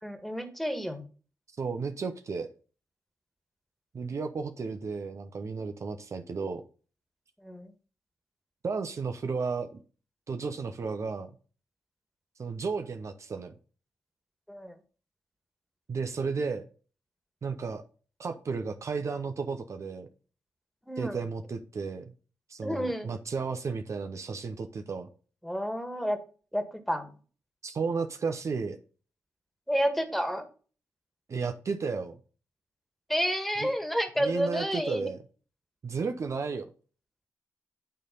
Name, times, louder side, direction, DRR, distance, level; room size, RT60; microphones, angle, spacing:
voice 1, 0.0-1.0 7.4-7.7 14.5-14.8 20.8-21.2 22.6-23.1 25.4-26.2 26.5-27.1 29.7-30.4 33.1-35.1, equal, 5° left, 6 dB, 1.8 m, -30 dB
voice 2, 1.6-2.5 3.9-6.6 8.6-9.8 10.3-11.3 12.4-13.5 15.9-16.7 17.4-17.8 18.2-20.1 21.0-22.1 22.5-25.1 27.6-28.8 31.3-32.2 33.6-33.7 34.2-35.2 35.8-36.7, right 5 dB, 55° right, 7 dB, 0.8 m, -33 dB
9.0 x 3.4 x 5.4 m, 0.39 s
supercardioid pair, 45°, 6 cm